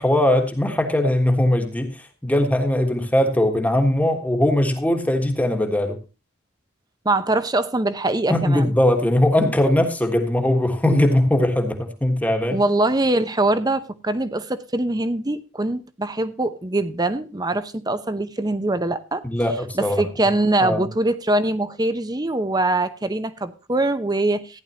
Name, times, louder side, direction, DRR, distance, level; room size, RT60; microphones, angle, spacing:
voice 1, 0.0-6.0 8.3-12.6 19.2-20.0 20.6-20.9, left 1 dB, 5° left, 1.4 m, -20 dB
voice 2, 7.0-8.7 12.5-19.2 19.7-24.6, right 2 dB, 20° right, 0.7 m, -23 dB
15.0 x 10.5 x 2.8 m
head